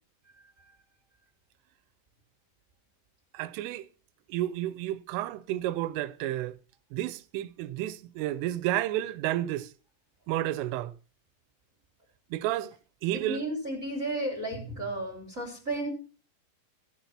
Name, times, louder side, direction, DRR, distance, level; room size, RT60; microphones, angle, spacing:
voice 1, 3.3-3.9 4.3-6.6 6.9-9.7 10.3-10.9 12.3-12.8 13.0-13.4, right 14 dB, 80° right, 3.1 m, -31 dB
voice 2, 13.1-15.9, right 1 dB, 15° right, 3.3 m, -33 dB
17.0 x 8.1 x 5.8 m
omnidirectional pair, 6.0 m